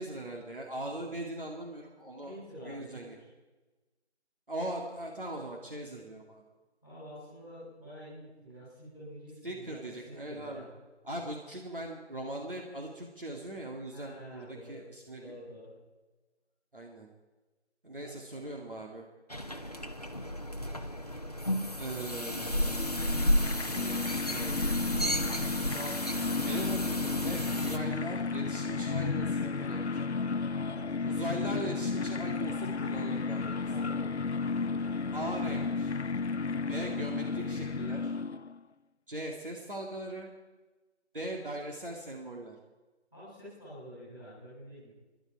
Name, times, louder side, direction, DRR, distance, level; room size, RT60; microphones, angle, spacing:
voice 1, 0.0-2.4 2.6-3.2 4.5-6.4 9.4-10.6 11.0-15.3 16.7-17.1 17.8-19.0 21.8-22.8 23.7-25.1 25.7-30.0 31.0-33.6 35.1-35.9 36.7-38.1 39.1-40.3 41.1-42.5, right 1 dB, 50° right, 0 dB, 2.2 m, -40 dB
voice 2, 2.2-3.2 6.8-10.7 13.9-14.8 15.2-15.7 18.0-18.5 30.6-30.9 33.6-34.2 43.1-44.9, equal, 5° right, -12 dB, 6.5 m, -48 dB
sound 1, 19.3-27.8, equal, 35° left, 0.8 m, -32 dB
sound 2, 22.0-38.6, left 4 dB, 70° left, 0.6 m, -33 dB
26.5 x 11.5 x 4.7 m, 1.2 s
figure-of-eight pair, 170°, 35 cm